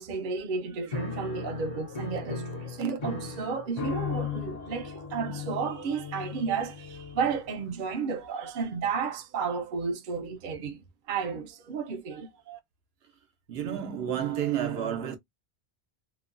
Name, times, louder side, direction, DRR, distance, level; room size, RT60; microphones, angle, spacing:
voice 1, 0.0-12.6, right 5 dB, 60° right, 0.7 m, -32 dB
Piano, 0.9-7.7, left 5 dB, 45° left, 0.7 m, -37 dB
voice 2, 13.5-15.2, right 10 dB, 80° right, 0.9 m, -30 dB
2.9 x 2.1 x 2.4 m
omnidirectional pair, 1.0 m